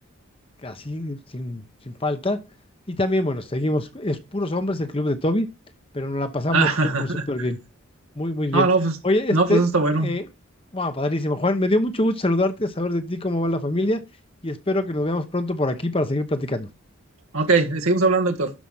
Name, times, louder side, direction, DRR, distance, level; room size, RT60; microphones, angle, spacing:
voice 1, 0.6-2.4 2.9-5.5 5.9-7.6 8.2-8.7 9.0-9.6 10.0-10.2 10.7-14.0 14.4-16.7, left 1 dB, 25° left, 1.0 m, -24 dB
voice 2, 6.5-7.2 8.5-9.0 9.3-10.1 17.3-18.5, right 3 dB, 85° right, 1.8 m, -20 dB
12.5 x 5.0 x 5.7 m
head